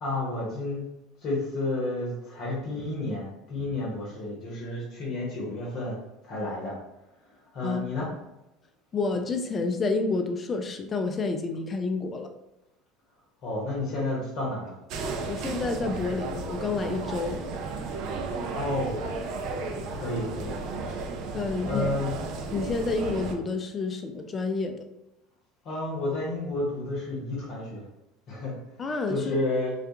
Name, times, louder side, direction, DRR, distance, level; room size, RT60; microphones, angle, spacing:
voice 1, 0.0-0.8 1.2-6.0 6.3-6.7 7.5-8.1 13.4-14.7 18.5-19.0 19.9-20.6 21.6-22.1 25.6-27.8 28.3-28.5 29.1-29.7, left 2 dB, 55° left, -3 dB, 0.8 m, -31 dB
voice 2, 7.6-8.2 8.9-12.3 15.3-17.4 21.3-21.9 22.5-24.8 28.8-29.4, left 3 dB, 35° left, 6 dB, 0.4 m, -29 dB
sound 1, 14.9-23.4, right 3 dB, 60° right, 0.4 m, -34 dB
2.3 x 2.2 x 2.7 m, 0.92 s
hypercardioid pair, 80°, 0 cm